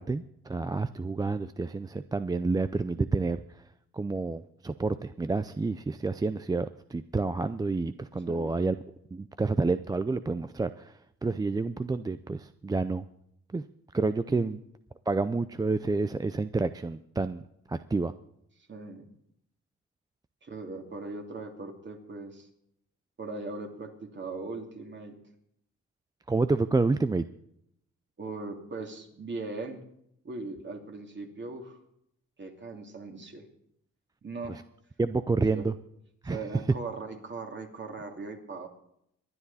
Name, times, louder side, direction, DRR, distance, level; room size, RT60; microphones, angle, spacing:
voice 1, 0.0-3.4 3.9-8.8 9.1-10.9 11.2-13.0 13.5-13.6 13.9-14.6 15.1-17.4 17.7-18.1 26.3-27.2 35.0-35.7 36.2-36.4, right 3 dB, 15° right, 12 dB, 0.4 m, -29 dB
voice 2, 18.6-19.1 20.4-22.5 23.2-25.2 28.2-29.9 30.2-31.8 32.4-33.5 34.2-34.6 35.5-35.7 36.2-38.7, right 3 dB, 40° right, 3 dB, 2.7 m, -39 dB
23.5 x 9.7 x 4.1 m, 0.74 s
cardioid pair, 90°, 30 cm